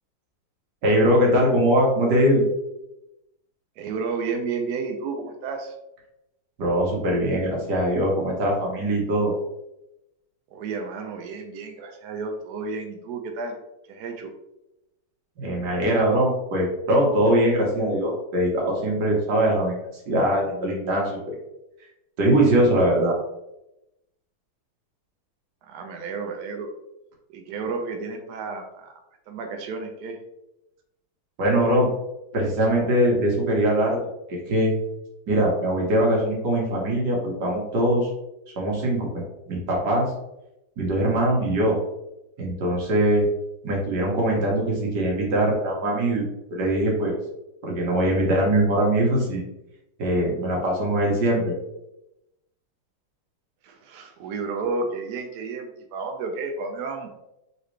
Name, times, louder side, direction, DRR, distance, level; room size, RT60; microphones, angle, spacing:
voice 1, 0.8-2.4 6.6-9.3 15.4-19.8 20.1-21.2 22.2-23.2 31.4-31.9 32.3-34.0 34.3-34.7 35.3-38.1 38.6-40.1 40.8-41.8 42.4-43.3 43.6-46.2 46.5-47.1 47.6-49.4 50.0-51.6, right 1 dB, 55° right, -2 dB, 1.8 m, -22 dB
voice 2, 3.8-5.7 10.5-13.6 13.9-14.3 25.6-26.7 27.3-29.0 29.3-30.2 53.6-57.1, right 4 dB, 75° right, 4 dB, 0.9 m, -32 dB
4.0 x 4.0 x 3.2 m, 0.90 s
omnidirectional pair, 2.3 m